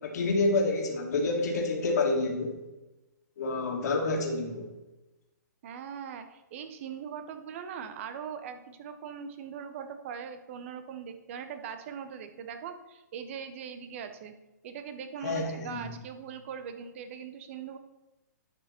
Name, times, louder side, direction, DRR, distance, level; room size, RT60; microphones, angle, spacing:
voice 1, 0.0-2.5 3.4-4.7 15.2-15.9, left 3 dB, 60° left, 1 dB, 2.3 m, -28 dB
voice 2, 5.6-14.3 14.6-17.8, right 7 dB, 40° right, 9 dB, 0.9 m, -41 dB
11.0 x 5.1 x 4.4 m, 1.0 s
hypercardioid pair, 145°, 10 cm